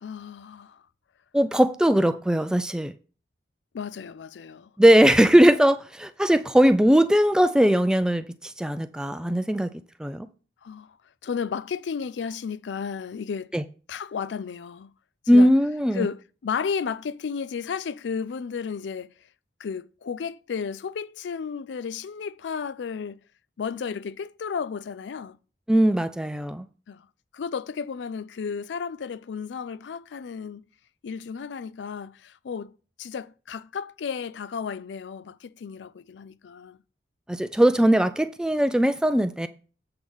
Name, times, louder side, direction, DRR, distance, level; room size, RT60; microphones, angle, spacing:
voice 1, 0.0-0.8 3.7-4.7 10.6-11.0 11.2-13.5 13.9-14.9 15.3-15.5 15.9-19.1 19.6-23.2 23.6-25.4 26.9-27.1 27.3-30.6 31.0-32.7 33.0-36.8, left 6 dB, 80° left, 0.4 m, -33 dB
voice 2, 1.3-2.9 4.8-9.7 10.0-10.3 13.5-13.6 15.3-16.1 25.7-26.7 37.3-39.5, equal, 5° right, 0.3 m, -20 dB
7.7 x 3.6 x 6.1 m
head